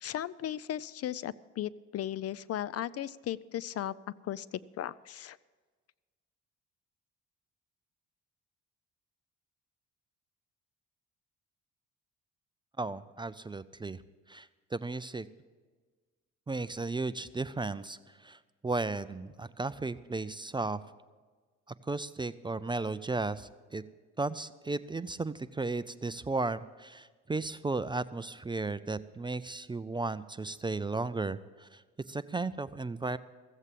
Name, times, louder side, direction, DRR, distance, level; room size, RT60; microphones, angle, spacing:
voice 1, 0.0-3.9 4.2-5.4, left 11 dB, 55° left, 20 dB, 0.4 m, -36 dB
voice 2, 12.8-14.0 14.3-15.3 16.5-18.0 18.2-20.8 21.9-23.8 24.2-31.8 32.1-33.2, right 3 dB, 15° right, 15 dB, 0.4 m, -35 dB
15.0 x 8.1 x 7.4 m, 1.4 s
cardioid pair, 90°, 30 cm